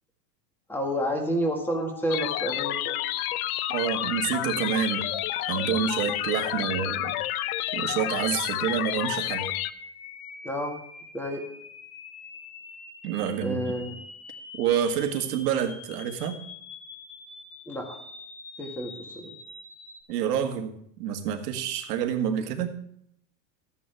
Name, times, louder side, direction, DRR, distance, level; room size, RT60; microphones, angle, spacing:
voice 1, 0.7-3.0 10.4-10.8 11.1-11.4 13.4-13.9 17.7-18.0 18.6-19.3, equal, 5° left, 2 dB, 1.8 m, -30 dB
sound 1, 1.0-20.0, left 3 dB, 25° left, 2.0 m, -45 dB
sound 2, 2.1-9.7, left 15 dB, 60° left, 0.6 m, -30 dB
voice 2, 3.7-5.1 5.5-7.1 7.7-9.5 13.0-13.6 14.6-16.4 20.1-22.7, right 9 dB, 75° right, 5 dB, 1.9 m, -28 dB
14.0 x 9.7 x 3.4 m, 0.70 s
supercardioid pair, 145°, 48 cm